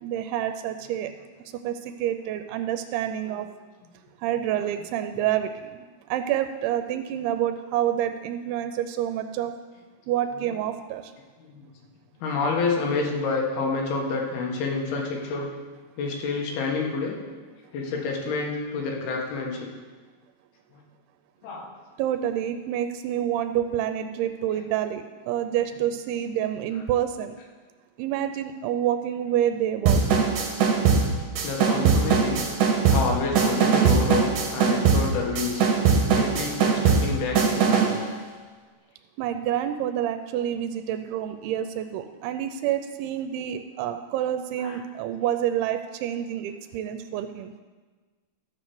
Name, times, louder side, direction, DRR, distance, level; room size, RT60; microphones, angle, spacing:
voice 1, 0.0-1.1 1.6-3.5 4.2-5.5 6.1-9.5 10.1-11.0 22.0-27.3 28.0-30.2 39.2-47.5, right 11 dB, 85° right, 9 dB, 2.5 m, -28 dB
voice 2, 11.4-11.7 12.2-15.5 16.0-17.2 17.7-19.7 20.7-20.8 21.4-21.7 31.4-32.4 32.9-35.7 36.2-37.9 44.6-44.8, left 4 dB, 80° left, 0 dB, 3.3 m, -29 dB
sound 1, 29.9-38.0, right 5 dB, 65° right, 2.6 m, -21 dB
13.0 x 4.6 x 6.9 m, 1.3 s
omnidirectional pair, 4.5 m